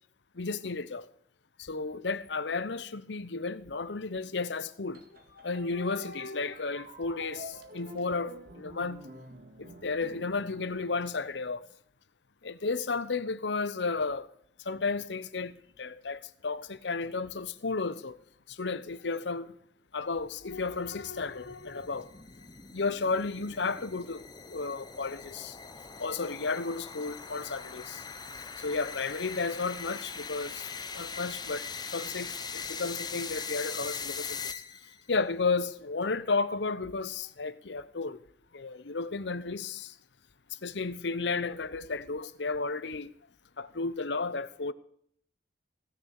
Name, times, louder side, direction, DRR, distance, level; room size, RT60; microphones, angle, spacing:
voice 1, 0.4-1.0 1.7-5.0 5.4-9.0 9.6-11.7 12.4-14.3 14.7-15.5 15.8-18.2 18.6-19.5 19.9-22.1 22.7-25.5 26.0-28.0 28.6-30.5 30.9-31.6 31.9-34.4 35.1-38.2 38.5-39.9 40.6-43.1 43.6-44.7, left 4 dB, 70° left, 0.8 m, -33 dB
sound 1, 4.9-11.6, equal, 55° right, 1.9 m, -49 dB
sound 2, 20.2-35.0, left 5 dB, 20° left, 0.7 m, -41 dB
17.0 x 6.9 x 6.5 m
head